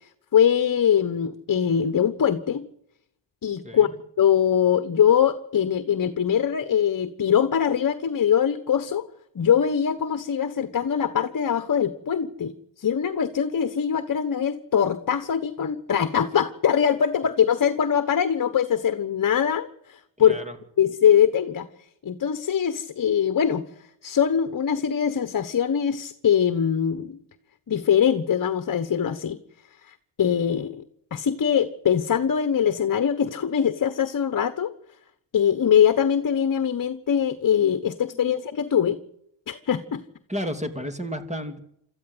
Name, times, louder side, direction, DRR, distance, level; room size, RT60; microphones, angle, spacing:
voice 1, 0.3-2.7 3.4-3.9 4.2-9.0 9.3-12.5 12.8-20.4 20.8-21.7 22.0-23.6 24.0-27.2 27.7-29.4 29.9-30.8 31.1-34.7 35.3-39.0 39.5-40.0, left 8 dB, 45° left, 12 dB, 1.3 m, -22 dB
voice 2, 20.2-20.6 38.1-38.3 40.3-41.6, equal, 15° right, 8 dB, 2.6 m, -32 dB
26.5 x 14.0 x 8.0 m, 0.74 s
cardioid pair, 100°, 46 cm